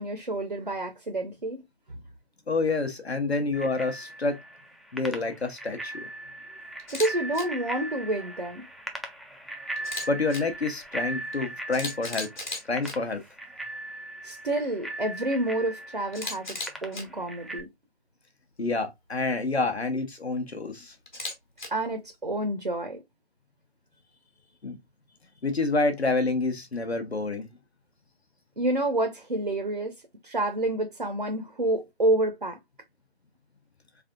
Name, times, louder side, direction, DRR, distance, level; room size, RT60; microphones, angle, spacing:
voice 1, 0.0-1.6 1.9-2.0 6.9-8.7 14.2-17.7 21.7-23.0 28.6-29.9 30.2-32.6, right 1 dB, 50° right, 0.6 m, -29 dB
voice 2, 2.5-4.4 4.9-5.9 10.1-12.3 12.7-13.2 18.6-20.9 24.6-24.8 25.4-27.5, left 3 dB, 70° left, 0.9 m, -28 dB
Bicycle bell, 3.5-17.6, right 1 dB, ahead, 0.3 m, -39 dB
Camera, 6.8-7.1 7.3-7.4 9.8-10.4 11.3-11.4 11.7-12.9 16.1-17.0 21.1-21.7, left 2 dB, 45° left, 1.1 m, -35 dB
3.7 x 3.3 x 2.3 m
figure-of-eight pair, 180°, 33 cm